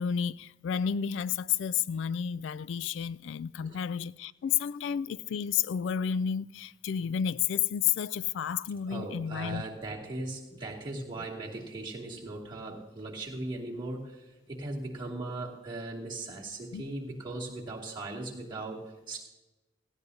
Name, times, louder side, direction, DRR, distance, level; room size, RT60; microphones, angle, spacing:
voice 1, 0.0-9.6 11.2-11.3 16.7-16.8, left 8 dB, 80° left, 0.3 m, -31 dB
voice 2, 8.9-19.2, right 2 dB, 25° right, 2.5 m, -38 dB
17.5 x 15.0 x 2.8 m
head